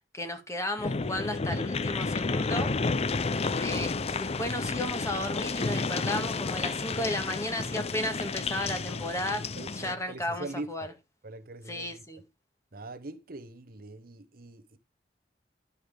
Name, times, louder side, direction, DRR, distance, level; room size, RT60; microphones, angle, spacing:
voice 1, 0.1-2.7 3.6-10.9 11.7-12.2, left 1 dB, 15° left, 2.0 m, -34 dB
sound 1, 0.8-9.9, left 4 dB, 35° left, 0.5 m, -31 dB
voice 2, 9.6-10.9 11.2-12.0 12.7-14.8, right 2 dB, 55° right, 1.1 m, -42 dB
11.5 x 5.4 x 5.1 m
head